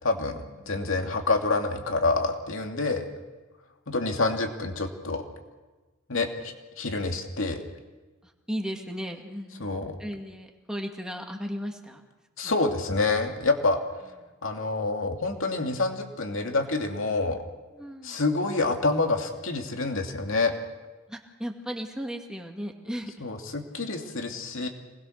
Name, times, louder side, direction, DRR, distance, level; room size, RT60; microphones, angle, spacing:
voice 1, 0.0-3.1 3.9-5.2 6.1-7.6 9.6-10.0 12.4-13.8 14.4-17.4 18.0-20.5 23.2-24.7, left 3 dB, 65° left, 3 dB, 2.6 m, -27 dB
voice 2, 8.2-12.0 12.4-12.5 14.2-14.3 17.7-18.2 21.1-23.3 23.6-23.7, equal, 5° right, 2 dB, 2.2 m, -36 dB
27.0 x 20.5 x 6.6 m, 1.2 s
head